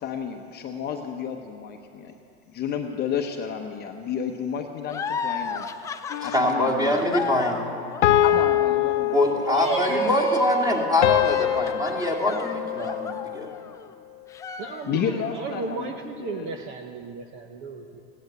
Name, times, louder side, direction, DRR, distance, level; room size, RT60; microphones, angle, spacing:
voice 1, 0.0-2.1 2.5-5.7 6.2-7.1 8.2-9.2 14.9-15.8 16.3-16.4, left 7 dB, 30° left, 4 dB, 0.9 m, -31 dB
sound 1, 4.9-13.9 14.3-15.3, left 6 dB, 10° left, 0.3 m, -35 dB
sound 2, 6.1-6.8 8.0-9.8 11.0-13.4, left 13 dB, 85° left, 0.8 m, -24 dB
voice 2, 6.2-7.6 9.1-13.5, left 1 dB, 10° right, 0 dB, 2.3 m, -24 dB
voice 3, 9.3-10.6 14.6-18.0, right 5 dB, 35° right, 5 dB, 0.9 m, -32 dB
16.0 x 10.5 x 7.9 m, 2.7 s
supercardioid pair, 135°, 34 cm